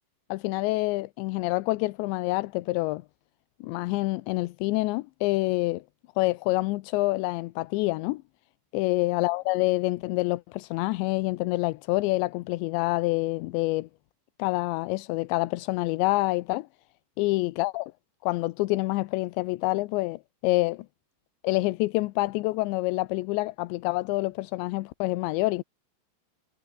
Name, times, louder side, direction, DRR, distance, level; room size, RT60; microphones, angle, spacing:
voice 1, 0.3-3.0 3.6-5.8 6.2-8.2 8.7-13.9 14.4-16.7 17.2-17.9 18.2-20.9 21.4-25.6, left 21 dB, 85° left, 2.9 m, -27 dB
omnidirectional pair, 5.4 m